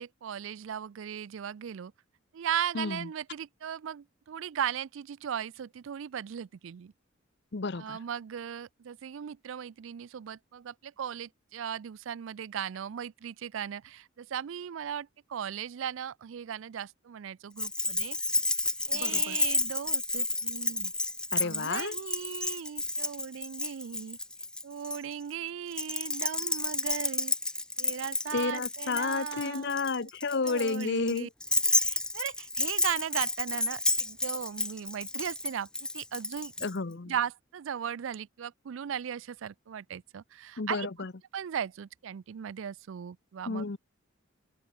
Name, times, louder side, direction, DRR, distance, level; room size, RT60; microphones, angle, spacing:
voice 1, 0.0-1.9 2.3-6.9 7.8-18.2 18.9-20.9 21.4-24.2 24.6-27.3 27.8-30.1 30.4-31.3 31.7-35.7 35.9-36.5 37.1-40.9 41.3-43.6, right 8 dB, 75° right, 0.4 m, -37 dB
voice 2, 2.7-3.1 7.5-8.0 18.9-19.4 21.3-22.0 28.3-31.3 36.6-37.1 40.6-41.1 43.5-43.8, left 4 dB, 55° left, 0.8 m, -31 dB
Keys jangling, 17.6-25.0 25.7-36.7, left 2 dB, 5° left, 0.6 m, -31 dB
head